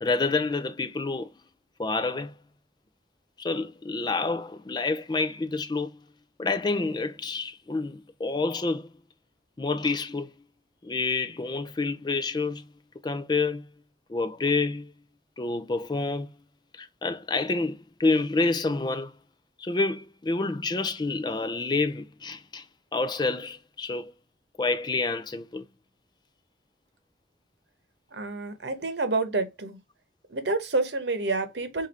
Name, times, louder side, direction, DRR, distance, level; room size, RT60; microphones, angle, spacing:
voice 1, 0.0-1.3 1.8-2.4 3.4-6.0 6.4-8.9 9.6-10.3 10.8-12.7 13.0-13.7 14.1-14.9 15.4-16.4 16.7-19.2 19.6-22.7 22.9-24.1 24.6-25.6, left 3 dB, 25° left, 0.4 m, -28 dB
voice 2, 28.1-29.8 30.3-31.9, right 3 dB, 75° right, 1.0 m, -28 dB
4.7 x 2.6 x 4.2 m
head